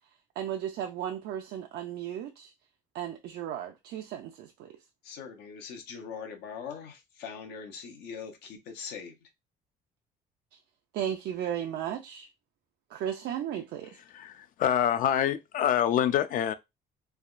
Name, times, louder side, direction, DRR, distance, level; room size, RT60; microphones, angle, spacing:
voice 1, 0.4-2.5 2.9-4.8 10.5-10.6 10.9-12.3 12.9-14.0, right 10 dB, 75° right, 0.4 m, -35 dB
voice 2, 5.0-9.3, left 6 dB, 85° left, 0.8 m, -42 dB
voice 3, 14.1-16.5, left 10 dB, 55° left, 0.4 m, -26 dB
3.4 x 2.2 x 2.4 m
cardioid pair, 110°, 17 cm